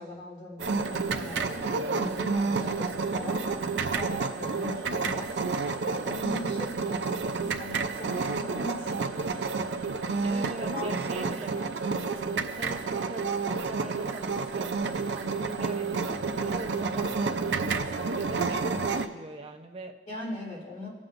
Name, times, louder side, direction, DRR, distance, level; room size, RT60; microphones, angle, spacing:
voice 1, 0.0-3.4 3.9-5.3 5.9-6.8 7.1-9.4 9.7-10.4 10.7-11.7 20.1-20.9, left 1 dB, 45° left, -5 dB, 3.0 m, -40 dB
sound 1, 0.6-19.1, right 4 dB, 80° right, 0.6 m, -30 dB
voice 2, 10.2-11.5 12.4-13.3 13.6-20.0, right 2 dB, 35° right, 3 dB, 0.8 m, -42 dB
19.5 x 7.4 x 2.6 m, 1.4 s
head